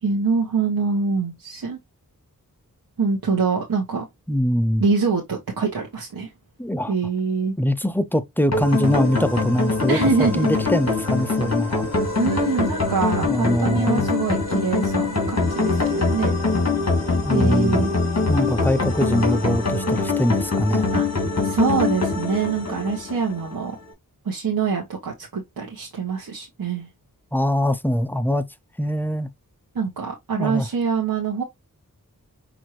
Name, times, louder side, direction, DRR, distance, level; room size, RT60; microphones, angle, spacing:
voice 1, 0.0-1.8 3.0-4.1 4.8-6.3 6.9-7.5 9.9-10.6 12.2-16.3 17.3-17.9 20.9-21.1 21.4-23.7 24.2-26.9 29.7-31.4, right 5 dB, 80° right, 1.1 m, -24 dB
voice 2, 4.3-4.9 6.6-6.9 7.6-11.9 13.2-14.1 17.2-17.8 18.3-20.9 27.3-28.4 28.8-29.3 30.4-30.7, equal, 5° left, 0.5 m, -23 dB
sound 1, 8.5-23.6, left 3 dB, 45° left, 2.0 m, -23 dB
6.0 x 2.7 x 3.0 m
wide cardioid pair, 70°, 35 cm